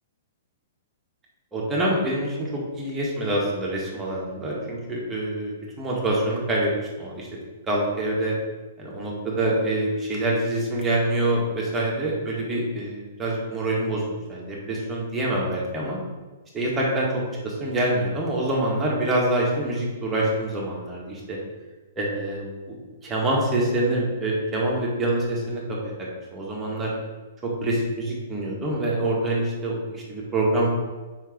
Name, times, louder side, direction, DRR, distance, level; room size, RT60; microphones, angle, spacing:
voice 1, 1.5-6.7 7.0-7.3 7.7-8.3 8.8-16.0 16.5-21.4 22.0-26.9 27.4-30.7, right 1 dB, 15° right, -4 dB, 1.9 m, -26 dB
5.0 x 4.4 x 6.1 m, 1.3 s
figure-of-eight pair, 110°, 0 cm